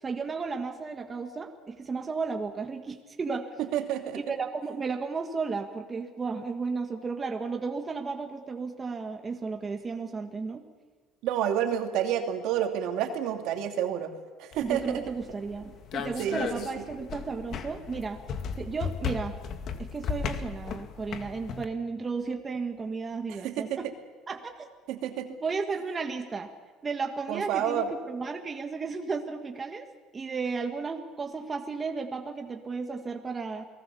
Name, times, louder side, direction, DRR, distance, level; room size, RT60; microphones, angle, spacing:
voice 1, 0.0-3.5 4.1-10.6 14.6-18.2 18.6-19.4 19.8-23.9 24.3-24.7 25.4-26.5 26.8-29.9 30.1-33.7, right 4 dB, 25° right, 4 dB, 1.7 m, -34 dB
voice 2, 3.6-4.2 11.2-14.1 14.4-15.0 16.2-16.7 23.3-23.9 24.9-25.3 27.3-27.9, right 10 dB, 65° right, 4 dB, 2.7 m, -29 dB
sound 1, 14.5-21.6, left 7 dB, 50° left, 1.8 m, -36 dB
29.0 x 19.0 x 7.0 m, 1.4 s
cardioid pair, 130°, 0 cm